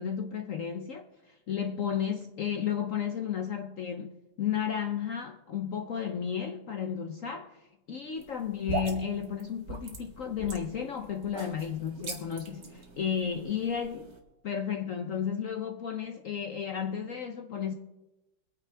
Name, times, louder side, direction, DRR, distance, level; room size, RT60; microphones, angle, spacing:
voice 1, 0.0-7.6 7.9-14.1 14.4-17.7, left 8 dB, 60° left, 0.9 m, -33 dB
sound 1, 8.2-14.2, right 2 dB, 50° right, 2.2 m, -40 dB
23.5 x 9.4 x 3.4 m
omnidirectional pair, 2.1 m